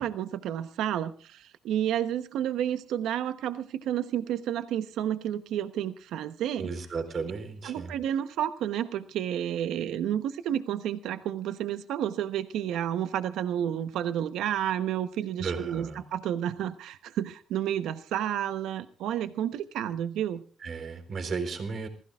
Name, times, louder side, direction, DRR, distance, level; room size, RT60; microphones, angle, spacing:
voice 1, 0.0-6.7 7.6-20.4, right 10 dB, 85° right, 10 dB, 1.0 m, -31 dB
voice 2, 6.6-7.9 15.4-16.0 20.6-21.9, right 5 dB, 50° right, 7 dB, 4.1 m, -34 dB
27.0 x 16.0 x 2.5 m, 0.39 s
cardioid pair, 90°, 0 cm